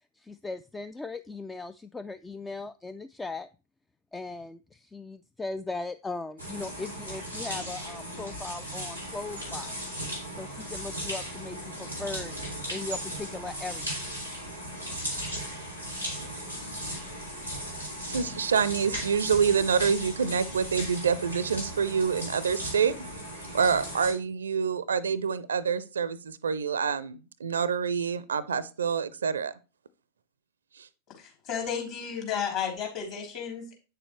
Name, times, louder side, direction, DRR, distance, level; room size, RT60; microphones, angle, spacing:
voice 1, 0.2-3.5 4.1-9.8 10.3-14.0, left 3 dB, 10° left, 12 dB, 0.3 m, -38 dB
sound 1, 6.4-24.1, equal, 90° left, 2.5 m, -37 dB
voice 2, 18.1-23.0 23.5-29.5 30.8-30.9, right 6 dB, 70° right, 19 dB, 0.5 m, -27 dB
voice 3, 31.1-33.7, left 7 dB, 45° left, 1 dB, 3.3 m, -33 dB
8.9 x 6.8 x 3.1 m, 0.33 s
figure-of-eight pair, 90°, 0 cm